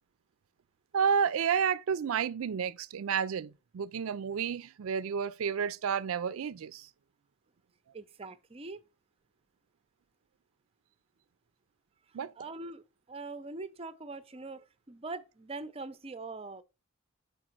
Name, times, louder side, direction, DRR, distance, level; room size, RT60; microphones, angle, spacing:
voice 1, 0.9-6.9 12.1-12.3, right 7 dB, 80° right, 0.4 m, -31 dB
voice 2, 7.9-8.8 12.1-16.6, right 3 dB, 30° right, 0.5 m, -43 dB
6.0 x 4.6 x 4.4 m
head